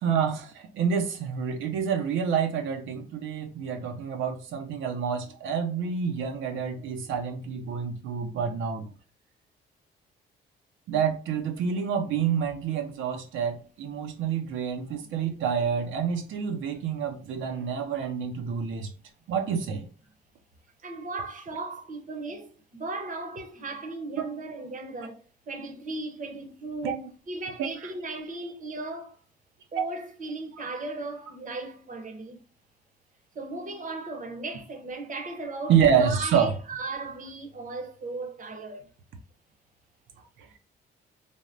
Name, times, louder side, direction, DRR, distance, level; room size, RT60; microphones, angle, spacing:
voice 1, 0.0-8.9 10.9-18.9 19.3-19.9 26.8-27.0 27.6-27.7 35.7-36.5 40.4-40.5, right 7 dB, 80° right, 0.5 m, -28 dB
voice 2, 20.8-29.2 29.7-32.4 33.3-38.9, right 2 dB, 40° right, 0.7 m, -37 dB
3.3 x 2.1 x 2.5 m
cardioid pair, 90°, 20 cm